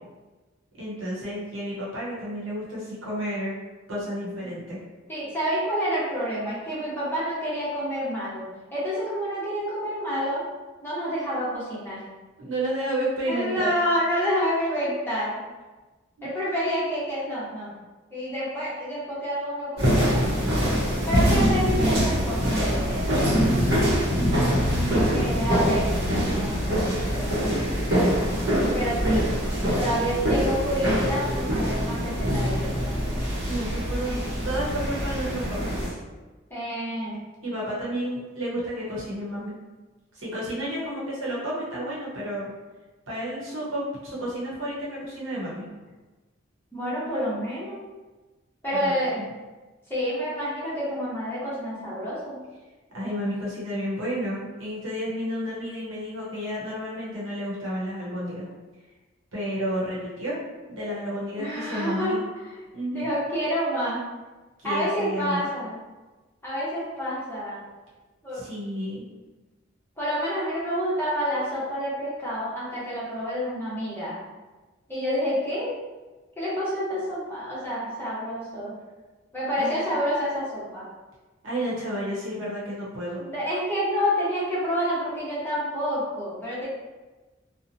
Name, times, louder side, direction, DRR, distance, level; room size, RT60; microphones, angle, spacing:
voice 1, 0.8-3.6 3.9-4.8 12.4-13.8 16.2-16.3 24.3-25.1 33.5-36.0 37.4-39.5 40.1-42.5 43.1-45.7 48.7-49.3 52.9-58.5 59.3-60.4 60.7-62.2 62.7-63.1 64.6-65.5 68.3-69.0 79.6-79.8 81.4-83.2, equal, 90° right, -6 dB, 0.9 m, -31 dB
voice 2, 5.1-8.5 8.7-10.4 10.8-12.0 13.3-15.4 16.2-17.7 18.1-20.4 21.1-23.6 25.1-26.0 26.3-27.4 28.7-29.3 29.7-33.0 36.5-37.2 46.7-47.8 48.6-49.2 49.9-52.4 61.4-62.2 62.9-64.0 64.6-65.8 66.4-67.6 68.2-68.4 70.0-74.2 74.9-75.7 76.4-78.8 79.3-80.9 83.2-86.7, equal, 10° left, -9 dB, 0.8 m, -28 dB
sound 1, 19.8-35.9, equal, 50° right, 0.9 m, -24 dB
2.8 x 2.1 x 2.6 m, 1.2 s
head